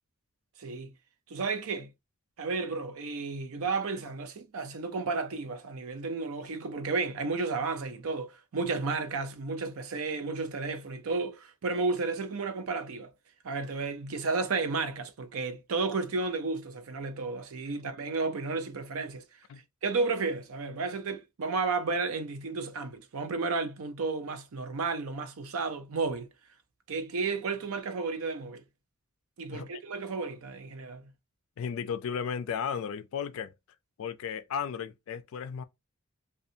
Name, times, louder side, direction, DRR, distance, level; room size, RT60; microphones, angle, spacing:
voice 1, 0.6-0.9 1.3-1.9 2.4-13.1 13.4-19.2 19.8-26.3 26.9-28.6 29.4-31.1, right 4 dB, 70° right, 0.5 m, -32 dB
voice 2, 31.6-33.5 34.0-35.6, left 7 dB, 65° left, 0.3 m, -34 dB
2.5 x 2.3 x 2.6 m
head